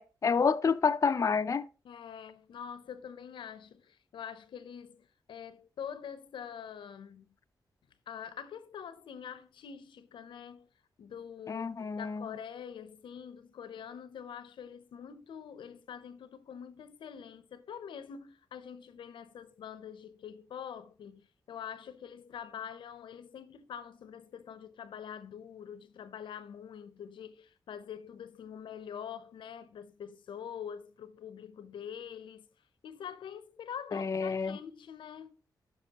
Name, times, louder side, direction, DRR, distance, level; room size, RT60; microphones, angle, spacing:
voice 1, 0.0-1.7 11.5-12.3 33.9-34.6, left 5 dB, 40° left, 0.4 m, -29 dB
voice 2, 1.8-7.3 8.1-10.7 11.0-32.5 32.8-35.4, left 8 dB, 85° left, 0.6 m, -45 dB
11.5 x 5.3 x 2.8 m
cardioid pair, 50°, 8 cm